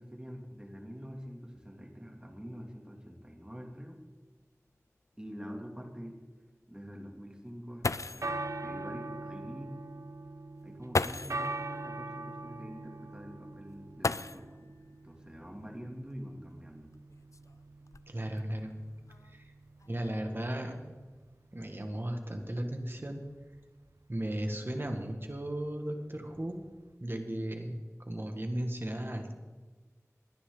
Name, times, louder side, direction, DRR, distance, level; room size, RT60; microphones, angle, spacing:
voice 1, 0.0-4.0 5.2-6.2 6.7-9.7 10.6-16.9, equal, 15° right, 1 dB, 2.9 m, -46 dB
sound 1, 3.9-4.0 4.4-4.5 5.1-5.2 7.5-7.6 7.8-8.4 9.7-9.8 10.9-11.5 14.0-14.7 16.1-16.2 16.9-18.4 19.1-19.4 19.8-20.2, left 3 dB, 70° left, 0.4 m, -35 dB
sound 2, 7.8-26.9, right 2 dB, 70° right, 0.7 m, -43 dB
voice 2, 18.1-18.7 19.2-19.5 19.9-20.9 21.5-23.2 24.1-26.6 27.0-29.3, right 1 dB, 40° right, 4 dB, 1.9 m, -36 dB
22.5 x 9.9 x 4.0 m, 1.3 s
wide cardioid pair, 50°, 6 cm